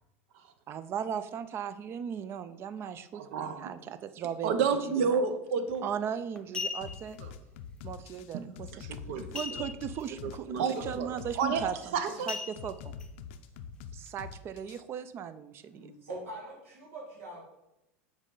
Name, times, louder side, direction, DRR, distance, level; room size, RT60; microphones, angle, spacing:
voice 1, 0.7-4.5 5.0-5.2 5.8-7.2 7.8-8.7 9.3-12.9 13.9-15.9, right 8 dB, 35° right, 13 dB, 0.4 m, -37 dB
voice 2, 3.1-3.7 4.4-5.9 8.3-8.4 8.8-9.3 10.2-11.1 11.4-12.3, right 5 dB, 70° right, 9 dB, 0.7 m, -30 dB
sound 1, 5.7-5.9 6.4-7.1 9.3-10.0 10.4-10.5 10.9-11.2 12.3-13.1 13.6-13.7, left 4 dB, 10° left, 0.7 m, -38 dB
sound 2, 6.8-14.8, left 7 dB, 65° left, 0.5 m, -44 dB
voice 3, 15.7-17.4, right 1 dB, 85° right, -3 dB, 2.0 m, -43 dB
6.1 x 4.2 x 3.8 m, 0.92 s
supercardioid pair, 115°, 7 cm